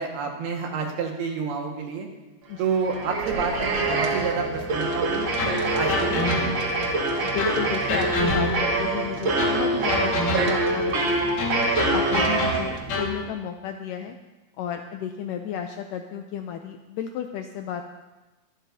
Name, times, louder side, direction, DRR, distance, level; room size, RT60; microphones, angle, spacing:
voice 1, 0.0-2.1 2.6-5.3 5.7-6.7, right 5 dB, 85° right, 1 dB, 3.6 m, -29 dB
sound 1, 2.6-13.1, right 2 dB, 60° right, 1.2 m, -25 dB
sound 2, 5.4-6.8 7.4-8.8 9.4-10.7 11.4-13.2, left 2 dB, 60° left, 3.2 m, -28 dB
voice 2, 7.2-11.4 11.9-14.2 14.6-17.8, left 9 dB, 80° left, 5 dB, 1.9 m, -33 dB
23.5 x 11.5 x 2.7 m, 1.1 s
omnidirectional pair, 4.4 m